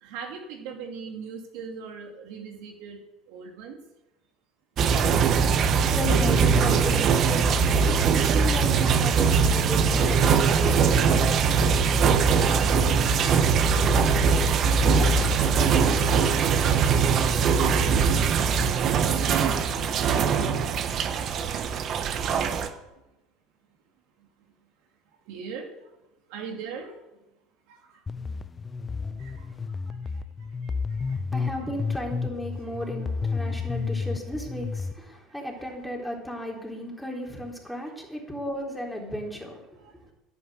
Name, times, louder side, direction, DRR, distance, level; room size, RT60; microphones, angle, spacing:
voice 1, 0.0-3.0 3.3-3.8 12.2-14.0 22.0-23.0 24.2-24.3 25.2-26.0 26.3-27.0 27.7-28.0 29.0-31.3 35.3-35.7 39.8-40.1, right 5 dB, 70° right, 3 dB, 2.4 m, -42 dB
sound 1, 4.8-22.7, right 5 dB, 45° right, 1.2 m, -21 dB
voice 2, 5.9-12.1 31.3-39.8, equal, ahead, -1 dB, 3.7 m, -35 dB
sound 2, 28.1-34.9, left 4 dB, 25° left, 0.6 m, -31 dB
10.5 x 8.6 x 7.9 m, 0.96 s
supercardioid pair, 100°, 0 cm